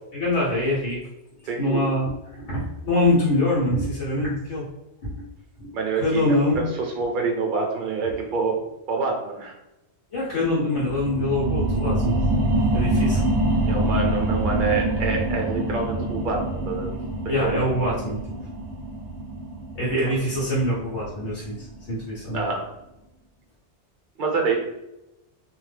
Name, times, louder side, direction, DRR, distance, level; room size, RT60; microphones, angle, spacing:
voice 1, 0.1-1.0 1.6-4.6 5.0-5.1 5.6-5.7 5.9-6.6 10.1-12.2 12.7-13.2 17.3-18.2 19.7-21.5 21.9-22.4, left 1 dB, 85° left, -9 dB, 1.3 m, -24 dB
voice 2, 1.5-1.9 5.7-8.6 8.9-9.5 13.7-17.0 17.2-17.5 20.0-20.2 22.3-22.6 24.2-24.6, right 4 dB, 55° right, 1 dB, 0.8 m, -26 dB
sound 1, 10.8-21.9 22.4-22.5, right 1 dB, 80° right, 0.9 m, -25 dB
2.7 x 2.2 x 3.3 m, 0.91 s
omnidirectional pair, 1.2 m